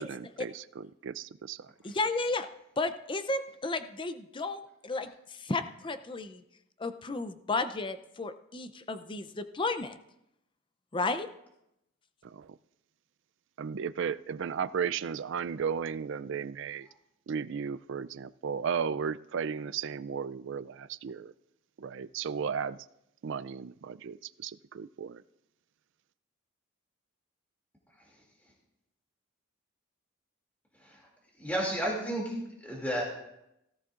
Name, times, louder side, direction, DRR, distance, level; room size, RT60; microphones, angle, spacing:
voice 1, 0.0-1.6 12.3-12.5 13.6-16.9 17.3-21.3 21.8-22.8 23.2-24.2 24.4-25.2, right 6 dB, 60° right, 15 dB, 0.4 m, -35 dB
voice 2, 1.8-2.5 2.8-6.4 6.8-10.0 10.9-11.3, left 3 dB, 25° left, 10 dB, 0.5 m, -33 dB
voice 3, 31.4-32.3 32.6-33.0, right 1 dB, 10° left, -3 dB, 2.5 m, -31 dB
17.5 x 15.0 x 2.5 m, 0.84 s
head